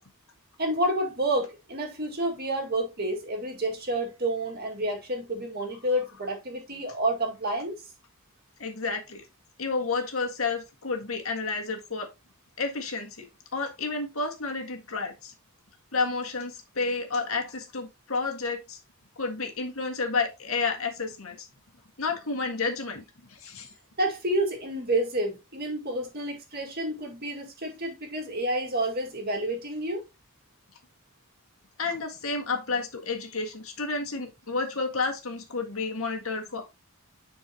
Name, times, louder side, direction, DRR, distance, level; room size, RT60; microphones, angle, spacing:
voice 1, 0.6-7.8 24.0-30.0, right 1 dB, 45° right, 2.1 m, -29 dB
voice 2, 8.6-9.2 9.6-12.1 12.6-13.3 13.5-15.3 15.9-18.8 19.2-21.5 22.0-23.0 23.3-23.7 31.8-36.7, left 4 dB, 70° left, 1.8 m, -31 dB
10.5 x 4.6 x 2.9 m
head